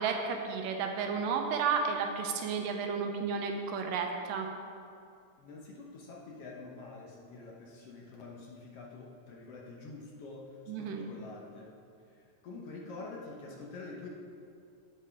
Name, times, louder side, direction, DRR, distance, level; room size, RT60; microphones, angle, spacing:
voice 1, 0.0-4.5 10.7-11.0, right 5 dB, 85° right, 4 dB, 2.4 m, -32 dB
voice 2, 5.4-11.7 12.1-14.1, left 3 dB, 65° left, -2 dB, 1.5 m, -47 dB
11.0 x 7.7 x 3.5 m, 2.4 s
omnidirectional pair, 3.8 m